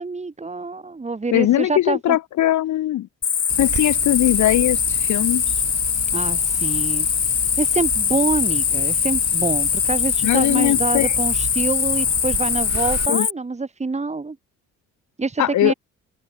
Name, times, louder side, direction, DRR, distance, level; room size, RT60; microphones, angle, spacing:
voice 1, 0.0-2.2 6.1-14.4 15.2-15.7, right 3 dB, 20° right, 2.6 m, -26 dB
voice 2, 1.3-3.1 3.6-5.5 10.2-11.2 13.1-13.3 15.4-15.7, left 13 dB, 75° left, 1.3 m, -20 dB
Cricket, 3.2-13.3, left 7 dB, 40° left, 1.3 m, -22 dB
sound 1, 3.5-13.1, right 9 dB, 60° right, 5.1 m, -35 dB
open air
cardioid pair, 90°, 30 cm